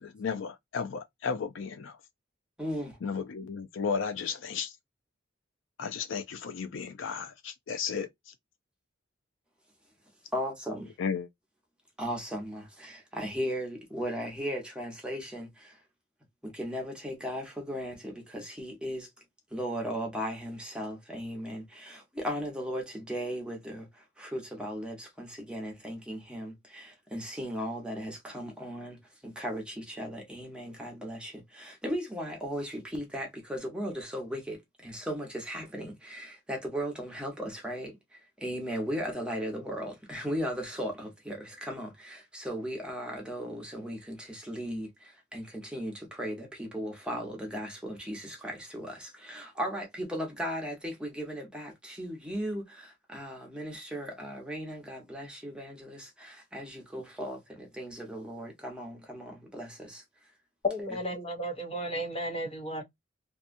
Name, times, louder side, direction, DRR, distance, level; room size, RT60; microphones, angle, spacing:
voice 1, 0.0-2.0 3.0-4.7 5.8-8.3 11.0-11.3, left 6 dB, 65° left, 0.4 m, -34 dB
voice 2, 2.6-3.0 10.3-10.9 12.0-15.8 16.4-19.1 19.5-60.0, equal, 5° right, 0.9 m, -37 dB
voice 3, 60.6-62.8, left 1 dB, 30° left, 0.9 m, -33 dB
2.7 x 2.3 x 2.5 m
head